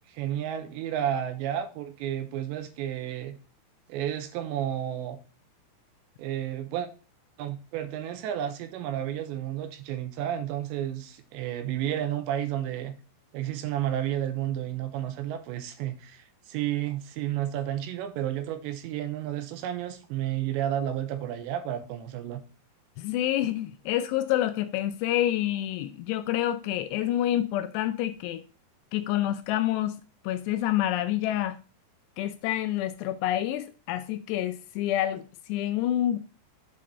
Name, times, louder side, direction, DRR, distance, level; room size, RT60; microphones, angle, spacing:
voice 1, 0.1-3.4 3.9-5.2 6.2-6.9 7.4-12.9 13.3-22.4, right 11 dB, 85° right, 3.0 m, -31 dB
voice 2, 23.0-28.4 28.9-30.0 30.2-31.6 32.2-36.2, left 13 dB, 80° left, 2.5 m, -28 dB
7.7 x 5.1 x 4.1 m
omnidirectional pair, 5.2 m